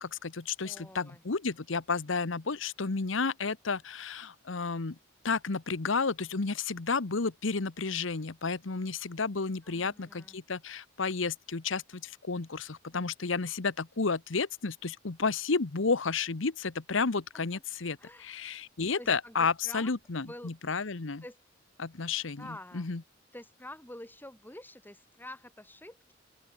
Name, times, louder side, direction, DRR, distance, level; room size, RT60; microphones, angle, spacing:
voice 1, 0.0-5.0 5.2-21.2 21.8-22.5 22.7-23.0, left 4 dB, 70° left, 1.0 m, -32 dB
voice 2, 0.6-1.2 9.6-10.4 17.3-17.6 18.0-18.4 18.9-19.9 20.2-20.5 21.2-21.4 22.4-22.9 23.3-26.1, left 1 dB, 10° left, 4.8 m, -48 dB
open air
head